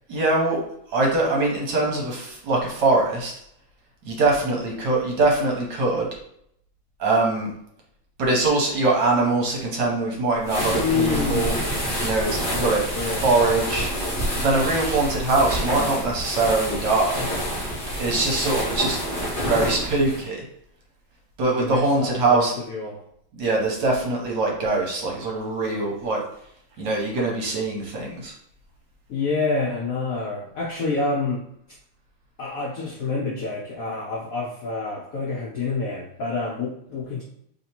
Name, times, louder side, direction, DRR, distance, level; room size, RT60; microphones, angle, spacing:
voice 1, 0.1-0.6 0.9-3.3 4.0-6.1 7.0-7.5 8.2-11.6 12.0-13.9 14.3-17.3 18.0-19.0 19.4-20.4 21.4-22.5 23.4-26.2 26.8-28.3, right 2 dB, 65° right, -1 dB, 1.4 m, -22 dB
sound 1, 10.4-20.2, equal, 30° left, 1.1 m, -28 dB
voice 2, 10.7-11.6 12.6-13.2 21.5-23.0 29.1-31.4 32.4-37.2, left 4 dB, 75° left, -2 dB, 0.8 m, -27 dB
3.3 x 2.8 x 4.2 m, 0.72 s
omnidirectional pair, 2.3 m